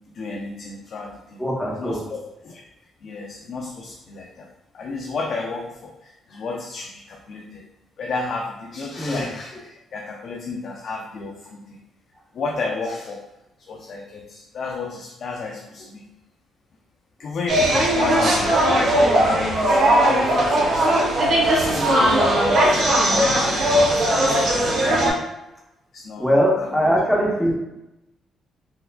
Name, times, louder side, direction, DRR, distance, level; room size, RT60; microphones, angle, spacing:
voice 1, 0.1-1.4 1.7-2.6 3.0-4.5 4.7-7.7 8.0-11.8 12.3-13.2 13.6-16.1 17.2-19.3 19.6-21.0 21.3-24.5 24.8-25.1 25.9-27.0 27.3-27.5, left 3 dB, 60° left, 0 dB, 0.4 m, -32 dB
voice 2, 1.4-2.0 9.0-9.2 26.2-27.5, equal, 5° left, -2 dB, 0.9 m, -21 dB
sound 1, 17.5-25.1, right 1 dB, 65° right, 0.9 m, -18 dB
4.4 x 2.2 x 2.3 m, 0.92 s
cardioid pair, 90°, 0 cm